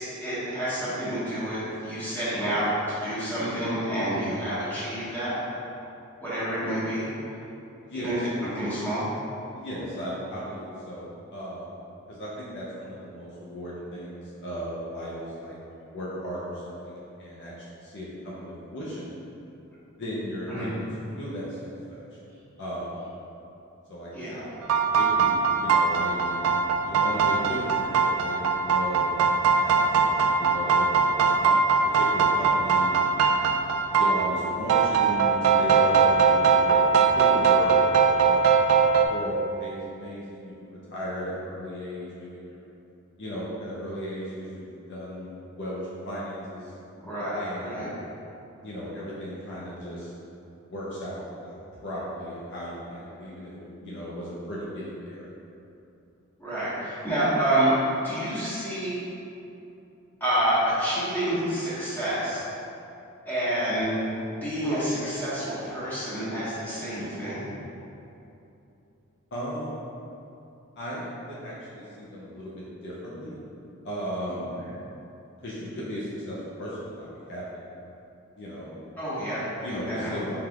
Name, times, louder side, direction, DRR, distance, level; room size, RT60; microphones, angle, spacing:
voice 1, 0.0-5.4 6.2-7.1 7.9-9.0 20.5-20.7 24.1-24.4 47.0-47.9 56.4-59.0 60.2-62.4 63.2-63.9 64.4-67.5 79.0-80.2, right 1 dB, 10° left, -13 dB, 1.5 m, -28 dB
voice 2, 7.8-8.1 9.5-11.8 12.1-17.5 17.8-19.1 20.0-20.8 21.2-22.0 22.6-23.1 23.9-24.4 25.0-26.4 26.8-29.1 29.6-31.5 31.8-33.2 33.9-38.4 39.1-42.6 43.2-46.7 47.3-47.9 48.6-50.1 50.7-55.3 69.3-69.8 70.8-73.4 73.8-74.5 75.4-77.4 78.4-78.8 79.6-80.4, equal, 55° left, -7 dB, 0.6 m, -36 dB
sound 1, 24.6-39.0, right 5 dB, 85° right, 0.3 m, -21 dB
4.6 x 3.6 x 2.4 m, 2.8 s
head